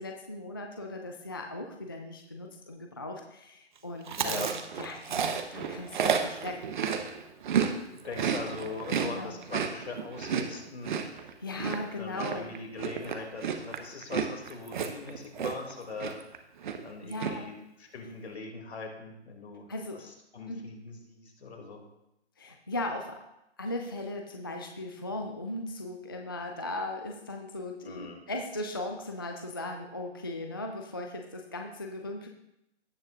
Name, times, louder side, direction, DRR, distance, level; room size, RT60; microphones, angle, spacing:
voice 1, 0.0-6.6 8.2-8.3 9.0-9.4 11.4-12.5 17.0-17.5 19.7-20.0 20.5-20.6 22.4-23.2 23.6-32.3, left 2 dB, 20° left, 3 dB, 0.3 m, -38 dB
Chewing mastication, 4.1-7.7 8.0-15.7 16.0-16.4 16.6-17.3, right 7 dB, 45° right, 0.9 m, -31 dB
voice 2, 4.2-4.5 8.0-11.0 12.0-16.2 16.8-17.5 17.8-19.7 20.0-21.8 27.8-28.2, left 4 dB, 70° left, 2 dB, 2.5 m, -41 dB
17.0 x 6.4 x 2.4 m, 0.86 s
hypercardioid pair, 145°, 34 cm